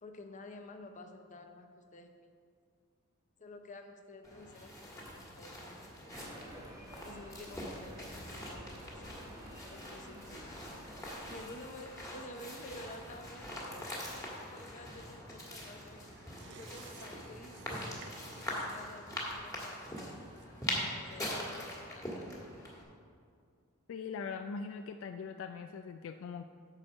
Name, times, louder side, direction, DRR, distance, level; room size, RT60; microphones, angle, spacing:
voice 1, 0.0-2.3 3.4-6.6 7.0-9.2 9.7-10.6 11.3-16.1 16.5-18.0 18.3-20.2 21.0-22.3, left 2 dB, 35° left, 5 dB, 0.7 m, -51 dB
sound 1, 4.2-22.8, left 1 dB, 15° left, 1.6 m, -43 dB
sound 2, 6.1-11.4, right 1 dB, 15° right, 1.0 m, -51 dB
sound 3, 15.5-22.6 22.9-23.0, right 5 dB, 55° right, 0.6 m, -58 dB
voice 2, 23.9-26.4, left 5 dB, 60° left, 8 dB, 0.3 m, -41 dB
9.7 x 4.4 x 6.4 m, 2.2 s
head